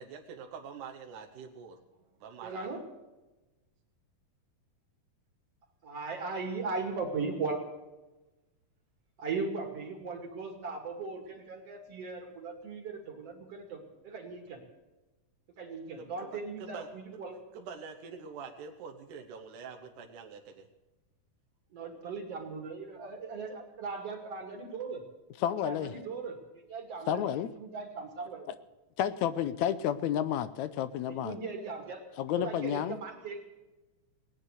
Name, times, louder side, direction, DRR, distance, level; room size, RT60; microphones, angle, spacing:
voice 1, 0.0-1.8 2.2-2.7 16.0-16.9 17.1-17.2 17.5-20.7, right 6 dB, 75° right, 3 dB, 2.6 m, -45 dB
voice 2, 2.4-2.9 5.8-7.7 9.2-14.6 15.6-17.4 21.7-25.0 25.6-26.4 26.7-27.3 27.6-28.5 31.0-32.1 32.4-33.4, right 4 dB, 50° right, 3 dB, 3.3 m, -38 dB
voice 3, 25.4-25.9 27.1-27.5 29.0-31.4 32.2-33.0, left 10 dB, 80° left, 14 dB, 1.8 m, -30 dB
18.5 x 10.0 x 6.6 m, 1.1 s
omnidirectional pair, 3.7 m